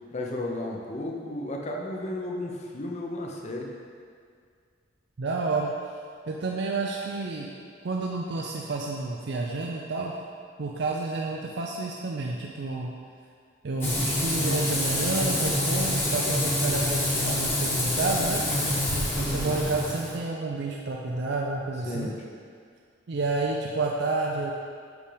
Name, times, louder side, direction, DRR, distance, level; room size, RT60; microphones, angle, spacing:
voice 1, 0.1-3.7 19.1-19.6 21.9-22.2, left 1 dB, 35° left, -1 dB, 0.8 m, -33 dB
voice 2, 5.2-5.7 6.3-7.5 7.8-10.1 10.6-12.9 13.6-22.1 23.1-24.5, right 3 dB, 60° right, -1 dB, 0.5 m, -30 dB
Frying (food), 13.8-20.2, left 1 dB, 10° left, 1.2 m, -26 dB
8.1 x 4.9 x 3.4 m, 2.1 s
head